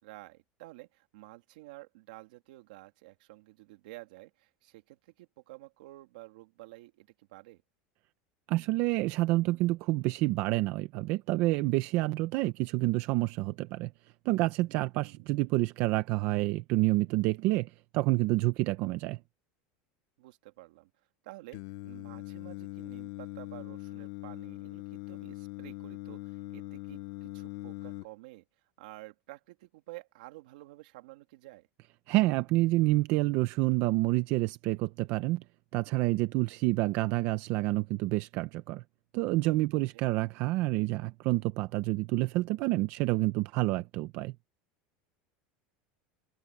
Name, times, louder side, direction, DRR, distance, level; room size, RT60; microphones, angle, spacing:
voice 1, 0.0-7.6 14.9-15.3 20.2-20.9 21.2-28.4 28.8-31.7 39.7-40.1, right 20 dB, 85° right, 2.7 m, -51 dB
voice 2, 8.5-13.9 14.2-19.2 32.1-35.4 35.7-38.8 39.1-44.3, right 19 dB, 50° right, 0.8 m, -28 dB
Singing, 21.5-28.0, left 21 dB, 55° left, 0.8 m, -42 dB
supercardioid pair, 165°, 4 cm